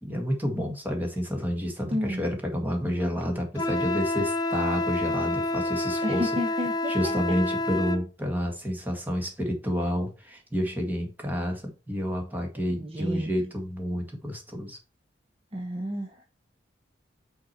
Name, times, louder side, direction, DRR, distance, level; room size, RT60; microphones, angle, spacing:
voice 1, 0.0-6.3 6.9-14.8, equal, 10° right, 1.9 m, -29 dB
voice 2, 1.9-2.2 6.0-7.1 12.8-13.3 15.5-16.2, left 1 dB, 30° right, 1.0 m, -31 dB
Wind instrument woodwind instrument, 3.6-8.0, left 2 dB, 20° left, 0.5 m, -28 dB
6.1 x 4.8 x 4.5 m
head